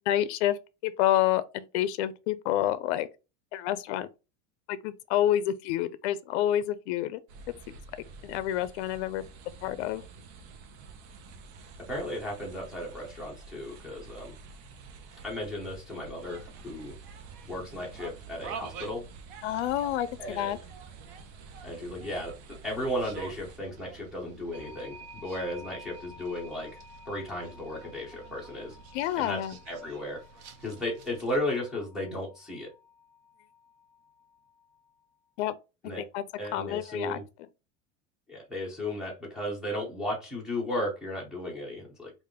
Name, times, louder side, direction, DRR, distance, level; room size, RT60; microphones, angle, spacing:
voice 1, 0.1-3.1 3.5-4.1 4.7-7.2 8.2-10.0 19.4-20.6 28.9-29.6 35.4-35.6 36.0-36.2 36.5-37.2, left 12 dB, 65° left, 0.5 m, -28 dB
sound 1, 7.3-23.6, right 4 dB, 65° right, 0.7 m, -49 dB
voice 2, 11.8-14.3 15.2-16.9 17.5-19.0 20.2-20.6 21.6-26.8 27.1-28.8 29.1-29.4 29.7-30.2 30.6-32.7 35.8-36.0 36.4-37.2 38.3-42.1, left 1 dB, ahead, 0.7 m, -35 dB
sound 2, 16.1-31.4, right 6 dB, 40° right, 0.4 m, -49 dB
sound 3, 24.5-35.1, left 2 dB, 25° right, 1.3 m, -53 dB
3.4 x 2.5 x 3.5 m
supercardioid pair, 180°, 36 cm